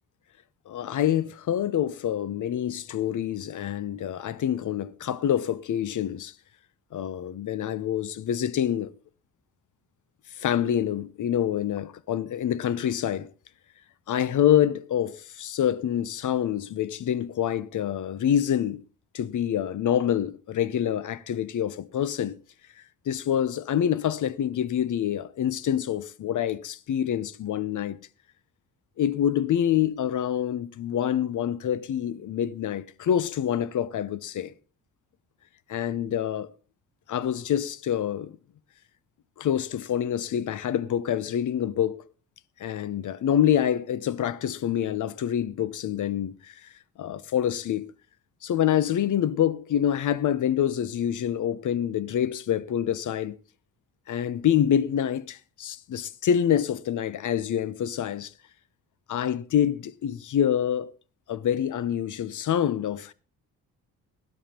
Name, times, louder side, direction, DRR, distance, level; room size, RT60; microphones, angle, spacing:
voice 1, 0.7-6.3 6.9-8.9 10.4-13.3 14.1-18.8 19.1-22.4 23.1-28.0 29.0-34.5 35.7-36.5 37.1-38.3 39.4-42.0 42.6-46.6 47.0-47.9 48.4-53.4 54.1-58.3 59.1-60.9 61.3-63.1, left 10 dB, 55° left, 0.8 m, -26 dB
16.5 x 12.5 x 2.9 m
cardioid pair, 80°, 36 cm